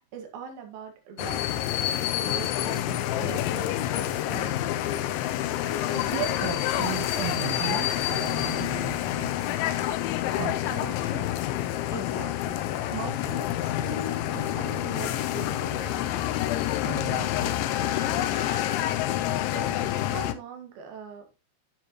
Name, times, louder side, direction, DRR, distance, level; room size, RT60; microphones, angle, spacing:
voice 1, 0.0-4.9 11.9-16.0 19.2-21.3, right 6 dB, 55° right, 3.1 m, -42 dB
sound 1, 1.2-20.3, left 12 dB, 80° left, 2.9 m, -28 dB
voice 2, 5.9-9.9 10.4-11.6 16.8-18.7, right 17 dB, 80° right, 2.8 m, -37 dB
9.9 x 7.2 x 3.0 m
omnidirectional pair, 5.8 m